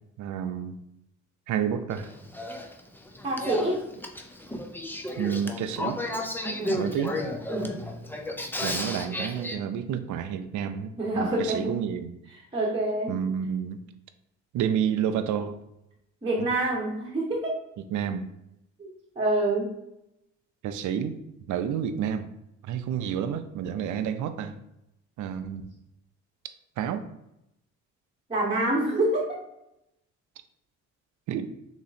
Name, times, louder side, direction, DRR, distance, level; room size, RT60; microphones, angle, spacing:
voice 1, 0.2-0.8 1.5-2.1 5.2-6.0 6.8-7.2 8.6-12.1 13.1-13.8 14.5-15.6 17.9-18.2 20.6-21.2 21.5-22.3 22.6-24.6 25.2-25.6 26.8-27.1 31.3-31.5, right 8 dB, 75° right, 9 dB, 0.5 m, -29 dB
Male speech man speaking / Female speech woman speaking / Conversation, 1.9-9.5, left 1 dB, 5° left, 0.5 m, -33 dB
voice 2, 3.2-3.9 6.6-6.8 7.5-7.8 11.0-11.8 12.3-13.2 16.2-17.6 18.8-18.9 19.2-19.7 28.3-29.4, right 1 dB, 20° right, -5 dB, 1.1 m, -27 dB
3.7 x 3.0 x 4.1 m, 0.84 s
cardioid pair, 90°, 30 cm